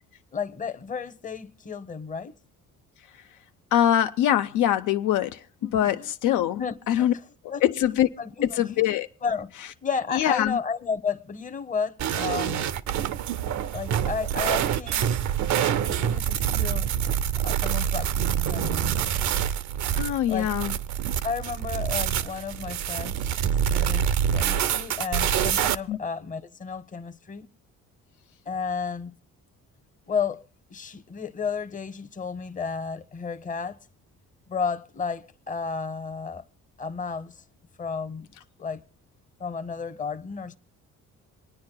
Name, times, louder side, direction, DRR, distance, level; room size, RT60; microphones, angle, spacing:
voice 1, 0.3-2.3 5.6-6.1 6.6-7.1 7.5-7.6 8.2-8.6 9.2-9.5 9.8-12.6 13.7-15.1 15.8-16.9 17.4-19.4 20.3-20.5 21.2-27.5 28.5-29.2 30.1-30.4 30.7-33.8 34.5-36.4 36.8-37.4 37.8-38.3 38.6-38.8 39.4-40.6, left 5 dB, 25° left, 0.7 m, -32 dB
voice 2, 3.7-5.4 5.7-6.6 6.9-7.1 7.6-8.1 8.4-9.1 10.1-10.6 20.0-20.7 25.9-26.0, left 11 dB, 75° left, 0.5 m, -23 dB
sound 1, 12.0-25.8, right 9 dB, 65° right, 0.6 m, -26 dB
26.0 x 9.5 x 2.2 m
cardioid pair, 90°, 31 cm